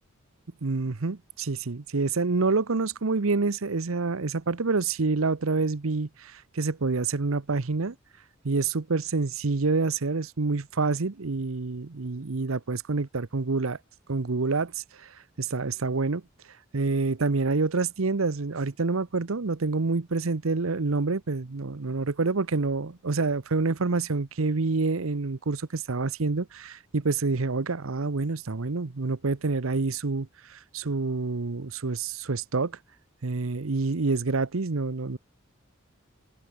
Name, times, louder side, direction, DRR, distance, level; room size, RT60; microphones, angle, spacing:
voice 1, 0.6-7.9 8.4-13.8 14.1-14.7 15.0-15.1 15.4-16.2 16.7-32.7 33.2-35.2, right 3 dB, 80° right, 0.9 m, -27 dB
head